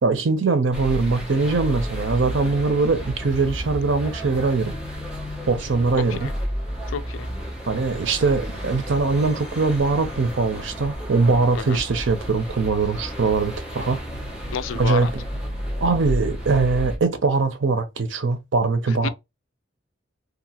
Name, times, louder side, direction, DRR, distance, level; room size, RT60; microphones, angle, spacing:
voice 1, 0.0-4.8 5.5-6.3 7.7-14.0 14.7-15.2 15.8-19.1, right 4 dB, 75° right, 0.6 m, -22 dB
sound 1, 0.7-17.0, equal, 5° right, 0.9 m, -32 dB
voice 2, 6.0-6.3 6.9-7.3 11.5-11.8 14.5-15.1 18.9-19.1, left 7 dB, 85° left, 0.3 m, -30 dB
2.9 x 2.4 x 2.7 m
head